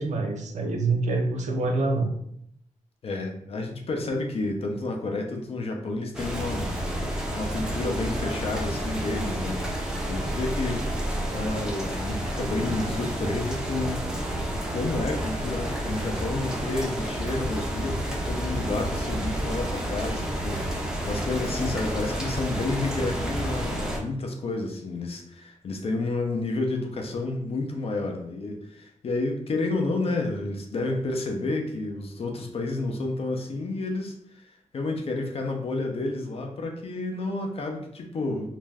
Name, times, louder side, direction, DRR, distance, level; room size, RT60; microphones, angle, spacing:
voice 1, 0.0-2.1, right 3 dB, 75° right, 3 dB, 0.5 m, -26 dB
voice 2, 3.0-6.7 7.3-9.6 10.1-10.9 11.3-14.0 14.5-38.5, left 2 dB, 55° left, 3 dB, 0.5 m, -30 dB
sound 1, 6.1-24.0, right 1 dB, 5° right, 0.5 m, -30 dB
2.5 x 2.2 x 3.2 m, 0.72 s
wide cardioid pair, 155°, 12 cm